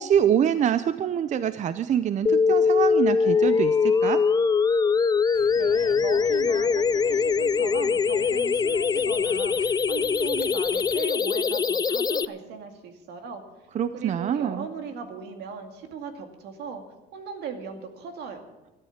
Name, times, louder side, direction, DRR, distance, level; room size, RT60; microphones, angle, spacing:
voice 1, 0.0-4.2 13.7-14.7, right 9 dB, 45° right, 13 dB, 0.6 m, -25 dB
sound 1, 2.3-12.3, left 5 dB, 25° left, 0.4 m, -22 dB
sound 2, 5.3-11.0, left 4 dB, 55° left, 2.6 m, -47 dB
voice 2, 5.6-13.4 13.9-16.8 17.1-18.4, right 5 dB, 80° right, 6 dB, 2.2 m, -38 dB
13.5 x 12.0 x 7.3 m, 1.0 s
cardioid pair, 110°, 17 cm